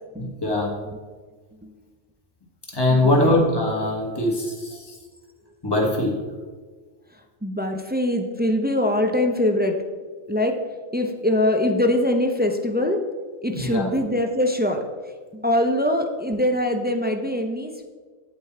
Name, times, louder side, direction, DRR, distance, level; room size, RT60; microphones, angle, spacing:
voice 1, 0.2-0.7 2.7-5.0 5.6-6.1 13.5-13.9, left 1 dB, 20° left, -2 dB, 1.8 m, -22 dB
voice 2, 2.9-3.3 7.4-9.8 10.3-10.6 10.9-13.0 13.4-14.8 15.3-17.8, left 1 dB, 15° right, 4 dB, 0.3 m, -23 dB
8.3 x 8.2 x 4.4 m, 1.4 s
omnidirectional pair, 1.3 m